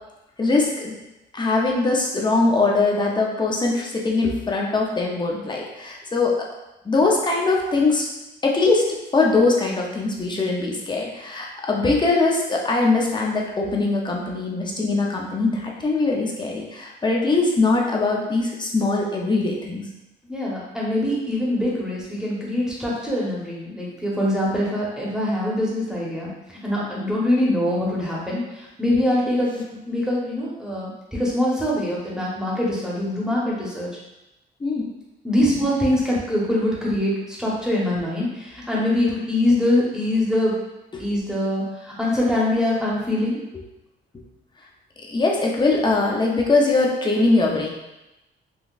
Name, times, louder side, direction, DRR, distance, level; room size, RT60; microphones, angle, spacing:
voice 1, 0.4-0.9 1.3-6.3 6.8-8.1 8.4-8.8 9.1-19.9 34.6-34.9 40.9-41.0 45.1-47.7, left 3 dB, 20° left, -1 dB, 0.7 m, -21 dB
voice 2, 20.3-26.3 26.6-33.9 35.2-40.6 41.0-43.4, left 1 dB, 5° right, -6 dB, 1.1 m, -23 dB
3.9 x 2.3 x 2.5 m, 0.96 s
cardioid pair, 90°, 20 cm